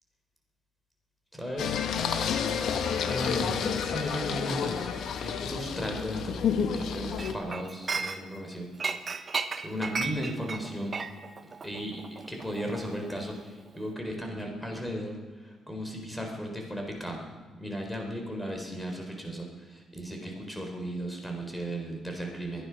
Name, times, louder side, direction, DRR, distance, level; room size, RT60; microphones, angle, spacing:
voice 1, 1.3-1.8 3.0-4.9 5.2-6.4 6.8-8.7 9.6-10.9 11.6-12.0 12.3-22.7, equal, 5° left, 2 dB, 4.0 m, -36 dB
Singing, 1.6-7.3, left 7 dB, 70° left, 1.4 m, -30 dB
Chink clink, 7.2-8.5 8.8-13.4 13.7-13.9, right 4 dB, 40° right, 1.0 m, -35 dB
23.0 x 10.0 x 6.0 m, 1.3 s
cardioid pair, 90°, 0 cm